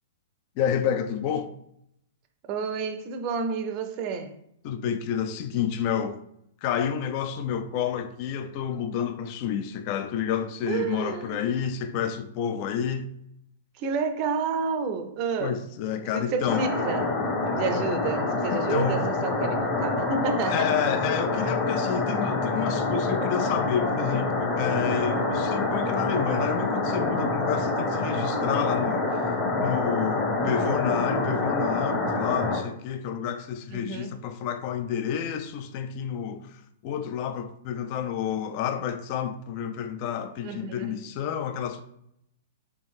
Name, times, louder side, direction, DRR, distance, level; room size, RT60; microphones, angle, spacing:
voice 1, 0.6-1.5 4.6-6.2 6.6-13.1 15.4-16.6 18.5-19.0 20.5-29.2 29.6-41.8, left 8 dB, 45° left, 0.4 m, -29 dB
voice 2, 2.4-4.4 10.7-11.6 13.7-15.6 16.1-17.2 17.5-20.7 25.2-25.3 33.7-34.2 40.4-41.1, right 5 dB, 40° right, 0.5 m, -30 dB
sound 1, 16.5-32.6, left 3 dB, 25° left, 0.9 m, -26 dB
4.4 x 2.5 x 3.6 m
hypercardioid pair, 120°, 0 cm